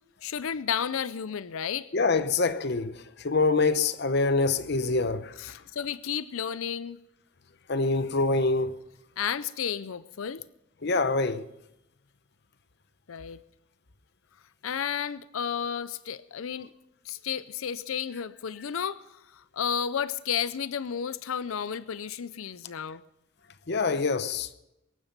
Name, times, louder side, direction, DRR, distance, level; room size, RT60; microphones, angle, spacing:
voice 1, 0.2-1.9 5.4-7.0 9.2-10.4 13.1-13.4 14.6-16.7 17.0-23.0, left 8 dB, 75° left, 0.5 m, -32 dB
voice 2, 1.9-5.6 7.7-8.7 10.8-11.5 23.7-24.5, left 3 dB, 50° left, 0.8 m, -25 dB
21.5 x 11.5 x 5.3 m
head